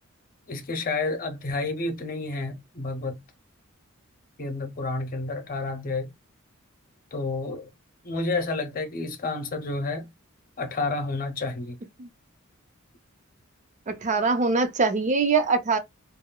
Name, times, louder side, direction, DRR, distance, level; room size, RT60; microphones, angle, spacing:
voice 1, 0.5-3.2 4.4-6.1 7.1-7.7 8.0-10.1 10.6-11.8, left 3 dB, 40° left, 0.7 m, -30 dB
voice 2, 13.9-15.8, right 4 dB, 35° right, 0.5 m, -23 dB
3.0 x 2.3 x 2.2 m
head